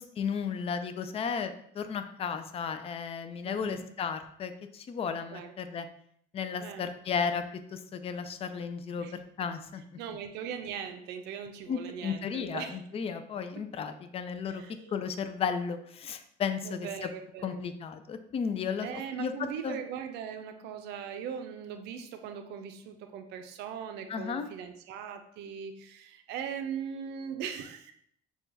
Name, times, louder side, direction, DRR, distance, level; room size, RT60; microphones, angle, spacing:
voice 1, 0.0-5.9 6.3-7.4 7.7-9.8 11.7-14.6 14.9-17.1 17.4-19.3 19.6-19.8 24.1-24.5, left 6 dB, 35° left, 9 dB, 0.4 m, -34 dB
voice 2, 3.4-3.9 5.3-5.5 6.6-6.9 9.0-9.1 10.0-12.8 13.5-13.6 14.5-15.0 16.6-17.6 18.8-27.9, right 7 dB, 85° right, 7 dB, 0.5 m, -40 dB
6.1 x 2.3 x 2.6 m, 0.67 s
cardioid pair, 110°, 17 cm